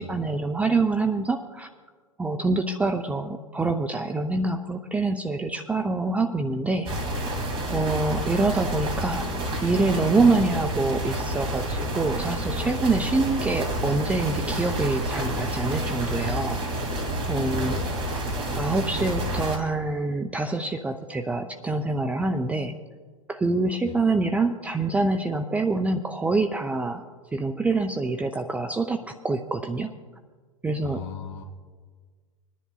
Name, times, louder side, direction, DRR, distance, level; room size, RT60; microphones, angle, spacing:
voice 1, 0.0-1.7 2.2-6.9 7.7-9.3 9.6-16.6 17.3-17.8 18.6-22.8 23.3-27.0 27.3-29.9 30.6-31.0, right 3 dB, 10° right, 5 dB, 0.5 m, -25 dB
sound 1, 6.9-19.6, right 1 dB, 30° right, 2.4 m, -29 dB
voice 2, 17.4-18.2 23.8-23.9 30.8-31.4, left 5 dB, 40° left, 3 dB, 2.5 m, -38 dB
25.5 x 10.5 x 2.3 m, 1.5 s
figure-of-eight pair, 95°, 17 cm